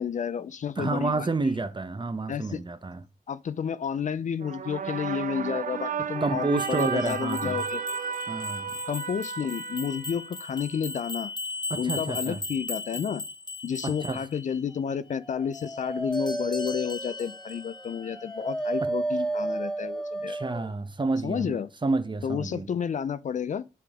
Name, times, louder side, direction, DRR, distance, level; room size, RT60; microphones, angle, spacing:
voice 1, 0.0-1.3 2.3-2.6 3.3-7.8 8.9-11.3 11.8-13.2 13.6-20.4 21.2-21.7 22.2-23.6, left 7 dB, 55° left, 0.5 m, -31 dB
voice 2, 0.8-3.0 6.2-7.6 8.3-8.8 11.7-12.4 13.8-14.2 18.8-18.9 20.3-22.7, right 3 dB, 30° right, 0.9 m, -29 dB
sound 1, 4.4-10.8, right 7 dB, 60° right, 0.6 m, -34 dB
sound 2, 6.6-14.8 15.5-18.8, left 3 dB, 30° left, 1.1 m, -39 dB
Dog, 15.1-20.7, right 2 dB, 5° left, 1.0 m, -32 dB
7.5 x 3.5 x 3.6 m
supercardioid pair, 40°, 15 cm